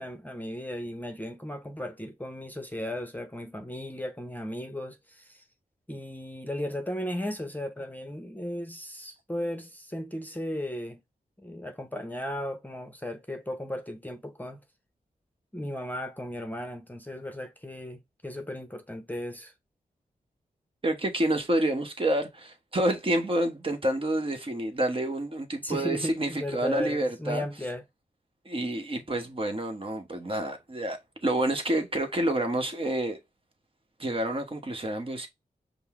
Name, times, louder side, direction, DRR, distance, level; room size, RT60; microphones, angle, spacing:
voice 1, 0.0-5.4 5.9-11.0 11.4-14.6 15.5-19.5 25.6-27.8, left 1 dB, 10° left, 0.8 m, -35 dB
voice 2, 20.8-27.4 28.4-33.2 34.0-35.3, right 1 dB, 35° right, 1.1 m, -28 dB
5.3 x 2.1 x 3.6 m
cardioid pair, 55°, 15 cm